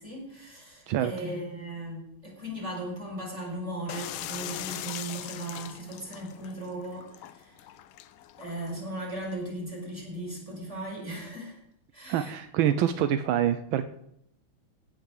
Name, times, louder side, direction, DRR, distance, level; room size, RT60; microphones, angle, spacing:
voice 1, 0.0-7.7 8.4-11.6 11.9-12.3, right 1 dB, 15° right, -2 dB, 5.1 m, -37 dB
sound 1, 3.9-9.3, left 12 dB, 80° left, 1.5 m, -41 dB
voice 2, 12.1-13.9, right 10 dB, 80° right, 10 dB, 1.4 m, -26 dB
16.5 x 6.0 x 6.5 m, 0.75 s
omnidirectional pair, 2.3 m